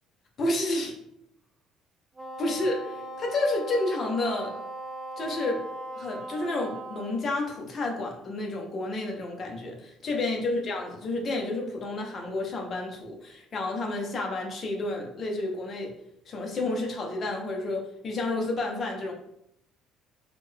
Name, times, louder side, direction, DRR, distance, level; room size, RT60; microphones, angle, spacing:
voice 1, 0.4-0.9 2.4-4.5 5.2-5.6 6.0-15.9 16.3-19.1, left 2 dB, 30° left, 1 dB, 0.6 m, -30 dB
Wind instrument woodwind instrument, 2.2-7.2, right 1 dB, 15° right, 0.4 m, -39 dB
3.6 x 2.1 x 3.2 m, 0.76 s
cardioid pair, 165°, 0 cm